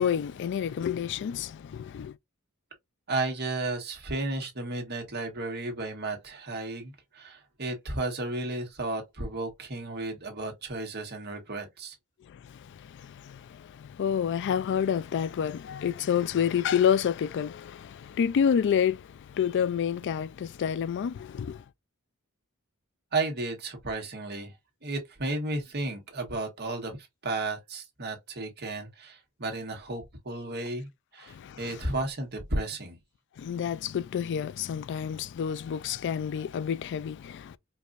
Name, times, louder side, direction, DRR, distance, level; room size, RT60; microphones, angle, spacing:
voice 1, 0.0-2.2 12.3-21.6 31.2-31.8 33.4-37.6, left 8 dB, 55° left, 0.3 m, -29 dB
voice 2, 3.1-11.9 23.1-24.5 24.8-27.0 27.2-33.0, right 2 dB, 50° right, 1.4 m, -33 dB
4.5 x 2.5 x 2.5 m
head